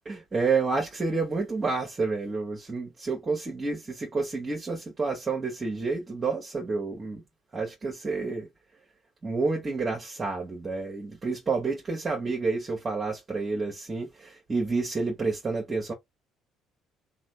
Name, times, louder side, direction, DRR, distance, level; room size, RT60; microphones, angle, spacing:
voice 1, 0.1-7.2 7.5-8.5 9.2-15.9, right 4 dB, 35° right, 1.2 m, -29 dB
3.0 x 2.4 x 3.1 m
hypercardioid pair, 55°, 0 cm